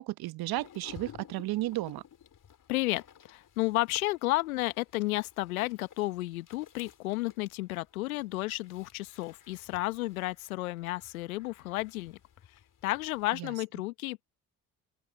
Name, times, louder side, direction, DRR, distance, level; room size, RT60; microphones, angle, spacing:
voice 1, 0.0-2.0 13.4-13.5, right 17 dB, 60° right, 1.1 m, -33 dB
sound 1, 0.6-13.4, left 9 dB, 50° left, 4.3 m, -55 dB
voice 2, 2.7-12.2 12.8-14.2, left 19 dB, 85° left, 1.2 m, -32 dB
open air
hypercardioid pair, 50°, 41 cm